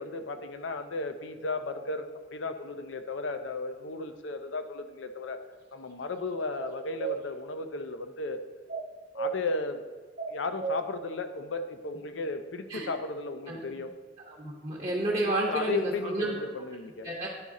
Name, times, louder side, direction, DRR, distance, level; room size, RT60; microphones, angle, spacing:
voice 1, 0.0-5.4 5.7-8.4 9.1-9.8 10.3-13.9 15.2-17.1, left 3 dB, 80° left, 8 dB, 0.5 m, -35 dB
sound 1, 6.6-7.2 8.7-9.4 10.2-10.8, right 6 dB, 50° right, 1.2 m, -33 dB
voice 2, 14.2-16.4 17.0-17.3, right 2 dB, 30° right, -3 dB, 0.9 m, -30 dB
10.0 x 4.1 x 3.7 m, 1.4 s
head